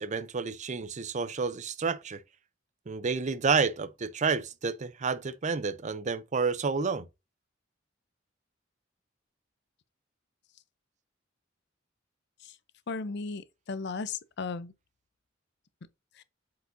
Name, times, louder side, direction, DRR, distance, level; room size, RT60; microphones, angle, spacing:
voice 1, 0.0-2.2 2.9-7.1, right 5 dB, 40° right, 0.5 m, -30 dB
voice 2, 12.9-14.7 16.2-16.3, left 4 dB, 60° left, 0.6 m, -36 dB
7.9 x 4.8 x 2.6 m
head